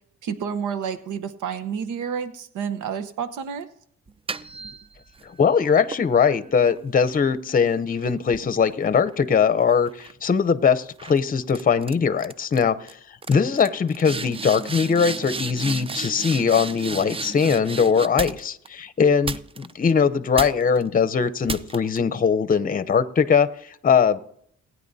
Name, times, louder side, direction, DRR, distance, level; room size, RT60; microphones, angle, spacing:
voice 1, 0.2-3.7, right 7 dB, 80° right, 9 dB, 1.0 m, -30 dB
sound 1, 4.1-5.3 5.9-9.5 9.9-10.3 11.0-11.2 11.5-11.9 12.2-12.6 12.9-13.0 13.2-18.7 19.2-19.9 20.3-20.8 21.5-22.0, right 4 dB, 20° right, 0.5 m, -34 dB
voice 2, 5.2-12.9 13.3-24.2, left 6 dB, 30° left, 12 dB, 0.7 m, -21 dB
20.0 x 9.3 x 2.7 m, 0.66 s
cardioid pair, 90°, 30 cm